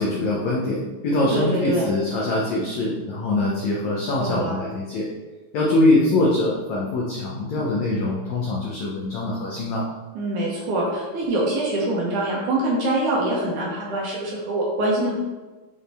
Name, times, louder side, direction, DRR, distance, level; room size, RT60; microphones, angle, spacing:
voice 1, 0.0-5.1 5.5-9.8, left 2 dB, 80° left, -4 dB, 1.6 m, -23 dB
voice 2, 1.3-1.9 4.2-4.6 10.2-15.2, right 1 dB, 70° right, -3 dB, 2.1 m, -24 dB
8.9 x 3.6 x 3.4 m, 1.2 s
omnidirectional pair, 4.4 m